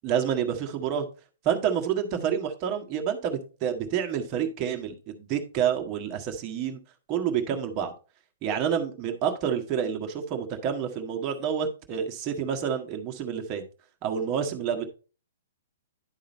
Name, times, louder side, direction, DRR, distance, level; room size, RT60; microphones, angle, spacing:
voice 1, 0.0-1.0 1.4-6.8 7.1-7.9 8.4-13.6 14.0-14.9, right 8 dB, 35° right, 4 dB, 1.5 m, -28 dB
11.0 x 3.8 x 4.3 m, 0.35 s
hypercardioid pair, 120°, 0 cm